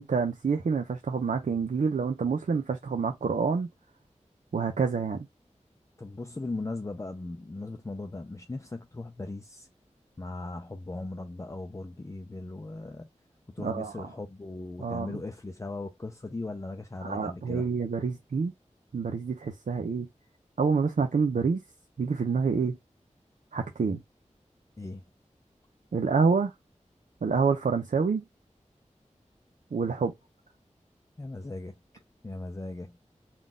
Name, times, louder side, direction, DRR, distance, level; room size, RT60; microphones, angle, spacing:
voice 1, 0.0-3.7 4.5-5.3 13.6-14.1 14.8-15.2 17.0-18.5 18.9-20.1 20.6-21.6 22.0-22.8 23.5-24.0 25.9-26.5 27.2-28.2 29.7-30.1, right 5 dB, 90° right, 0.6 m, -27 dB
voice 2, 6.0-9.7 10.2-13.1 13.5-17.7 24.8-25.0 31.2-31.7 32.2-33.0, left 2 dB, 25° left, 0.5 m, -38 dB
3.9 x 2.4 x 3.6 m
wide cardioid pair, 75°, 13 cm